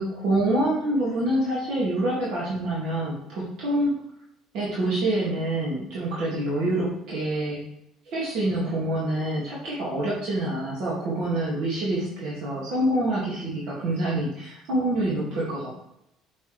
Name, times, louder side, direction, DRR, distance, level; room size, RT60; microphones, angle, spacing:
voice 1, 0.0-3.9 4.5-7.6 8.1-15.7, right 1 dB, 70° right, -6 dB, 2.2 m, -26 dB
8.2 x 7.1 x 3.4 m, 0.81 s
cardioid pair, 110°, 0 cm